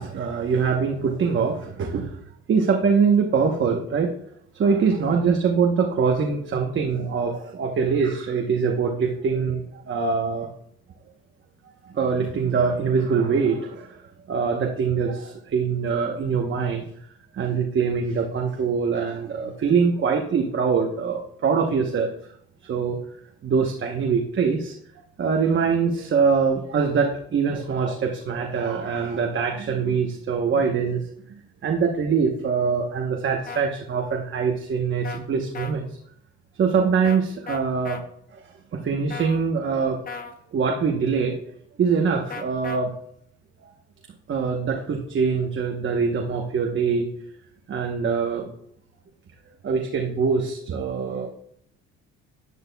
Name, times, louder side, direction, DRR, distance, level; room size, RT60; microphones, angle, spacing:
voice 1, 0.0-2.2 2.5-4.1 4.5-10.5 11.8-14.0 14.3-16.9 17.3-22.1 22.6-23.0 23.4-24.7 25.2-31.1 31.6-35.9 36.5-38.0 38.3-40.0 40.5-41.4 41.8-42.9 44.3-47.1 47.7-48.5 49.6-51.3, right 5 dB, 40° right, 2 dB, 1.0 m, -23 dB
sound 1, 33.5-33.6 35.0-35.2 35.5-35.7 37.0-37.2 37.5-38.0 39.1-39.4 40.1-40.3 42.3-42.8, left 5 dB, 30° left, 0.9 m, -35 dB
11.0 x 10.0 x 2.3 m, 0.70 s
cardioid pair, 110°, 29 cm